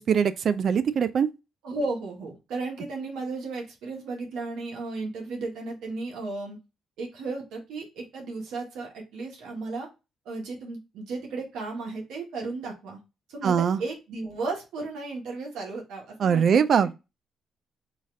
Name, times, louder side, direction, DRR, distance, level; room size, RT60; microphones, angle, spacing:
voice 1, 0.1-1.3 13.4-13.8 16.2-17.0, right 7 dB, 55° right, 0.3 m, -22 dB
voice 2, 1.6-6.6 7.0-9.9 10.2-13.0 13.3-16.6, right 3 dB, 85° right, 1.2 m, -34 dB
4.0 x 2.5 x 3.1 m
cardioid pair, 90°, 0 cm